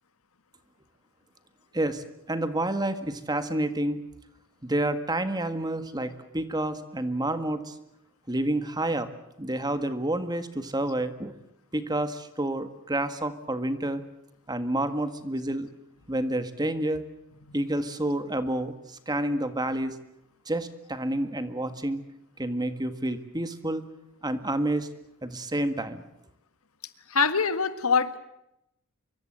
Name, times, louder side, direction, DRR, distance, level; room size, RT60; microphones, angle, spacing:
voice 1, 1.7-4.0 4.6-7.8 8.3-9.1 9.4-11.4 11.7-14.0 14.5-15.7 16.1-17.0 17.5-20.0 20.5-22.0 22.4-23.9 24.2-24.9 25.2-26.0, right 1 dB, 20° right, 10 dB, 1.7 m, -29 dB
voice 2, 27.1-28.2, left 5 dB, 75° left, 11 dB, 1.7 m, -24 dB
25.0 x 23.5 x 7.9 m, 0.84 s
head